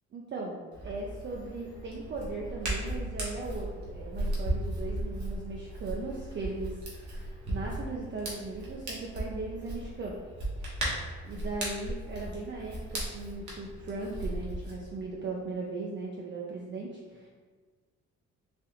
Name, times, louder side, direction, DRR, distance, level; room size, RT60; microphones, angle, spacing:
voice 1, 0.1-10.2 11.3-17.3, right 3 dB, 40° right, -2 dB, 0.5 m, -38 dB
Hands, 0.7-14.7, right 1 dB, 70° right, 1.2 m, -36 dB
4.1 x 2.5 x 2.8 m, 1.5 s
cardioid pair, 90°, 30 cm